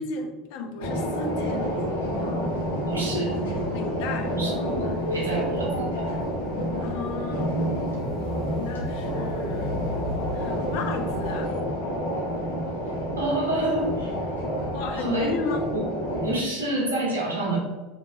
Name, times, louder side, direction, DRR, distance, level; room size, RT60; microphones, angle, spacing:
voice 1, 0.0-1.7 3.7-4.3 6.8-7.5 8.5-9.8 10.3-11.5 14.7-15.6, left 4 dB, 60° left, 4 dB, 0.6 m, -33 dB
sound 1, 0.8-16.4, equal, 75° left, 1.0 m, -29 dB
voice 2, 2.9-3.4 4.3-6.1 13.2-14.1 14.9-15.3 15.7-15.8 16.2-17.6, right 2 dB, 80° right, -3 dB, 1.1 m, -28 dB
sound 2, 4.5-11.5, left 1 dB, 30° left, 1.1 m, -38 dB
4.0 x 3.5 x 2.5 m, 1.2 s
figure-of-eight pair, 70°, 0 cm